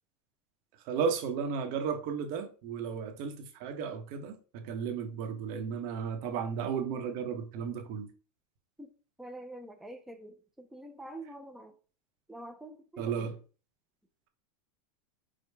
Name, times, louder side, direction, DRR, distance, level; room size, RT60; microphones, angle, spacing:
voice 1, 0.9-8.1 13.0-13.4, right 6 dB, 50° right, 0.8 m, -34 dB
voice 2, 9.2-11.7 12.3-13.4, right 1 dB, ahead, 0.3 m, -46 dB
4.9 x 2.1 x 3.3 m
supercardioid pair, 135°, 19 cm